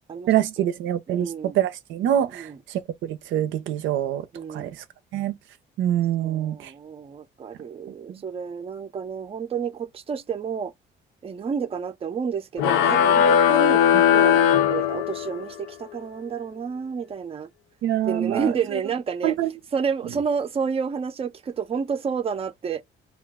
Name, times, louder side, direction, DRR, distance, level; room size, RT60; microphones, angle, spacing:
voice 1, 0.3-4.2 4.5-4.7 5.1-5.3 5.8-6.7 8.1-8.2 17.8-18.8 19.2-19.5, right 11 dB, 80° right, 0.5 m, -25 dB
voice 2, 1.1-1.6 2.3-2.6 4.3-4.7 6.2-10.7 11.2-13.8 14.1-17.5 18.0-19.4 19.7-22.8, right 6 dB, 30° right, 0.5 m, -30 dB
sound 1, 12.6-15.5, left 9 dB, 90° left, 0.4 m, -18 dB
2.3 x 2.2 x 3.4 m
cardioid pair, 90°, 20 cm